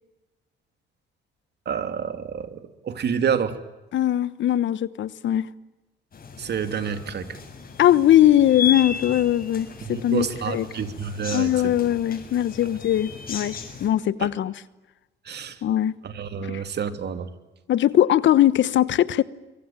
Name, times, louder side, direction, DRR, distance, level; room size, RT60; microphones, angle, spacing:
voice 1, 1.7-3.5 6.4-7.3 9.8-11.5 14.2-14.3 15.2-15.6 16.0-17.3, right 7 dB, 55° right, 3.0 m, -28 dB
voice 2, 3.9-5.5 7.8-10.7 11.3-14.5 15.6-16.0 16.5-16.6 17.7-19.2, left 12 dB, 70° left, 1.2 m, -20 dB
sound 1, 6.1-13.9, left 7 dB, 45° left, 7.2 m, -35 dB
26.0 x 23.5 x 9.1 m
cardioid pair, 90°, 20 cm